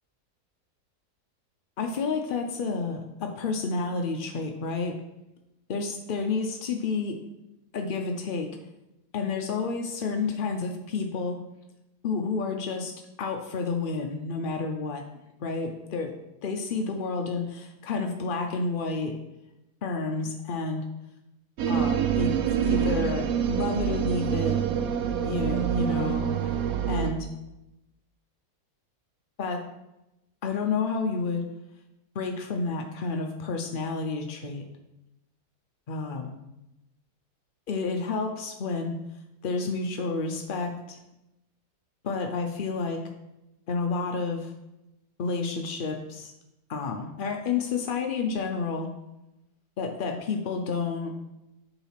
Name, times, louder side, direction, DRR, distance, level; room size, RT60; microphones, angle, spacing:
voice 1, 1.8-4.9 5.7-7.2 7.7-8.5 9.1-11.4 12.0-12.9 13.2-15.0 15.4-16.1 16.4-19.1 19.8-20.8 21.7-22.3 22.6-24.6 25.2-26.3 26.9-27.3 29.4-29.6 30.4-31.4 32.1-34.6 35.9-36.3 37.7-39.0 39.4-41.0 42.0-43.0 43.7-44.5 45.2-46.3 46.7-48.9 49.8-51.1, left 4 dB, 70° left, 3 dB, 0.5 m, -30 dB
sound 1, 21.6-27.1, right 8 dB, 70° right, 1.0 m, -26 dB
7.0 x 4.0 x 5.7 m, 0.91 s
omnidirectional pair, 1.7 m